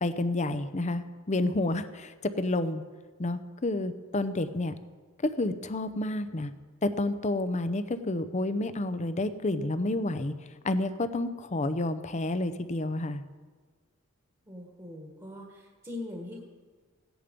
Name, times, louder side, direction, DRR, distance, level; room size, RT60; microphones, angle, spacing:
voice 1, 0.0-2.8 3.2-4.7 5.2-6.5 6.8-10.3 10.6-13.2, left 2 dB, 35° left, 11 dB, 0.7 m, -30 dB
voice 2, 14.5-16.4, left 2 dB, 20° right, 0 dB, 1.6 m, -41 dB
15.5 x 10.0 x 5.3 m, 1.4 s
head